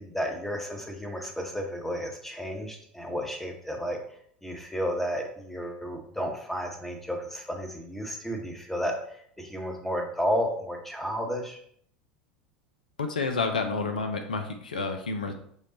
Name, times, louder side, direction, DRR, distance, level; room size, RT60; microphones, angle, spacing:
voice 1, 0.0-4.0 4.4-11.6, equal, 5° left, 2 dB, 0.9 m, -32 dB
voice 2, 13.0-15.3, left 4 dB, 75° left, 5 dB, 0.5 m, -29 dB
5.1 x 2.3 x 3.9 m, 0.64 s
figure-of-eight pair, 75°, 5 cm